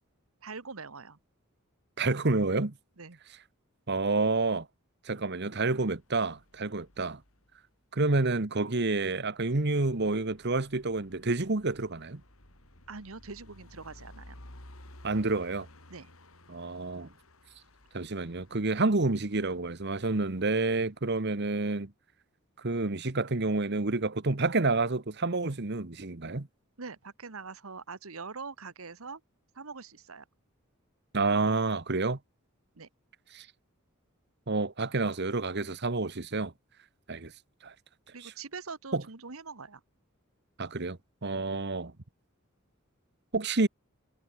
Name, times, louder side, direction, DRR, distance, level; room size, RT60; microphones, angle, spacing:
voice 1, 0.4-1.2 3.0-3.2 12.9-14.4 15.9-16.1 26.8-29.2 29.5-30.2 32.7-32.9 38.1-39.8, right 4 dB, 80° right, 1.4 m, -43 dB
voice 2, 2.0-2.7 3.9-4.7 5.0-7.2 7.9-12.2 15.0-15.7 16.5-17.1 17.9-21.9 22.6-26.5 31.1-32.2 33.3-33.5 34.5-36.5 37.1-37.3 37.6-37.7 38.2-38.3 38.9-39.0 40.6-41.9 43.3-43.7, right 3 dB, 50° right, 1.3 m, -29 dB
sound 1, 5.6-7.7 9.4-21.2, left 1 dB, 80° left, 6.0 m, -55 dB
head